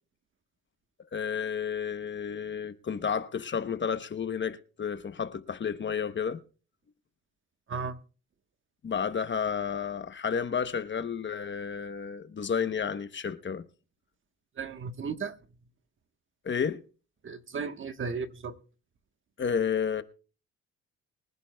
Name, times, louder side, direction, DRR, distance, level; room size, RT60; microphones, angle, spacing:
voice 1, 1.1-6.4 8.8-13.7 16.4-16.8 19.4-20.0, left 7 dB, 40° left, 1.0 m, -31 dB
voice 2, 14.6-15.3 17.2-18.6, right 5 dB, 40° right, 1.3 m, -35 dB
24.0 x 11.0 x 2.3 m
cardioid pair, 90°, 30 cm